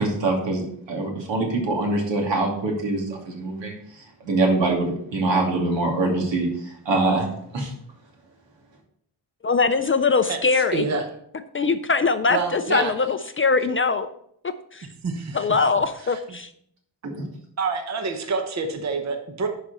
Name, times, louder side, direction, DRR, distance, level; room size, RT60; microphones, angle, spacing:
voice 1, 0.0-3.7 4.2-7.7, right 2 dB, 80° right, 0 dB, 2.7 m, -24 dB
voice 2, 9.4-10.8 11.5-14.1 14.7-14.9 15.3-16.5, left 4 dB, 30° left, 9 dB, 0.4 m, -22 dB
voice 3, 10.3-11.0 12.3-12.9 15.0-15.4 16.1-16.2 17.6-19.5, right 4 dB, 40° right, 5 dB, 0.9 m, -27 dB
11.5 x 4.9 x 4.2 m, 0.69 s
wide cardioid pair, 150°, 43 cm